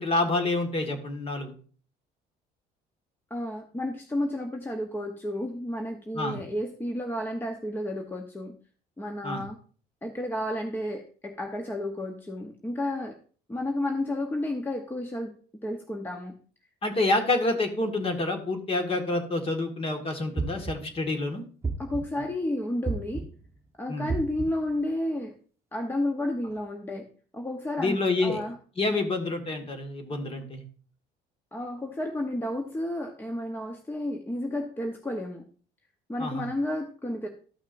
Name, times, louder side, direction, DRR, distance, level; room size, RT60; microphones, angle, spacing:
voice 1, 0.0-1.5 6.1-6.4 9.2-9.4 16.8-21.4 22.2-22.3 23.9-24.1 27.8-28.4 28.8-30.6 36.2-36.5, left 2 dB, 35° left, 5 dB, 1.7 m, -28 dB
voice 2, 3.3-8.5 9.0-9.6 10.0-13.1 13.5-15.3 15.6-16.3 21.8-23.2 23.8-25.3 25.7-27.1 27.3-28.6 31.5-35.4 36.1-37.3, left 1 dB, 10° left, 3 dB, 0.9 m, -31 dB
sound 1, 20.4-21.0 21.6-22.3 22.9-23.5 24.1-24.7, right 4 dB, 15° right, 1.1 m, -33 dB
13.5 x 6.0 x 2.6 m, 0.41 s
cardioid pair, 110°, 17 cm